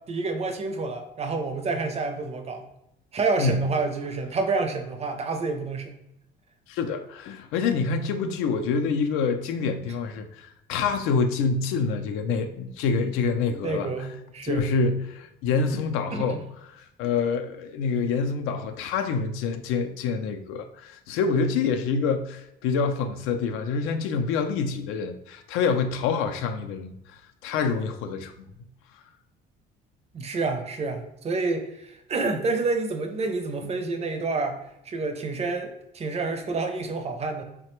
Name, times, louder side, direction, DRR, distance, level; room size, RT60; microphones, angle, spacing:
voice 1, 0.1-2.7 3.1-6.0 13.6-14.7 16.1-16.4 30.1-34.6 34.8-37.4, right 3 dB, 30° right, 5 dB, 0.4 m, -28 dB
voice 2, 6.7-14.1 14.4-16.4 16.7-28.5, left 5 dB, 80° left, 6 dB, 0.4 m, -26 dB
3.2 x 2.2 x 2.9 m, 0.82 s
cardioid pair, 105°, 21 cm